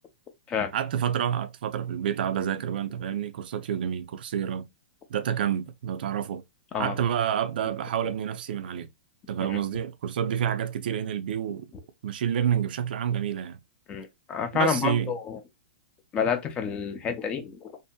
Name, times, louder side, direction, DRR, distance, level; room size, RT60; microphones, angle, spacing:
voice 1, 0.7-4.7 5.1-6.4 6.8-8.9 9.3-11.7 12.0-13.6 14.5-15.1, right 9 dB, 60° right, 0.4 m, -28 dB
voice 2, 13.9-15.4 16.1-17.7, left 7 dB, 15° left, 0.5 m, -29 dB
2.7 x 2.6 x 2.2 m
hypercardioid pair, 160°, 6 cm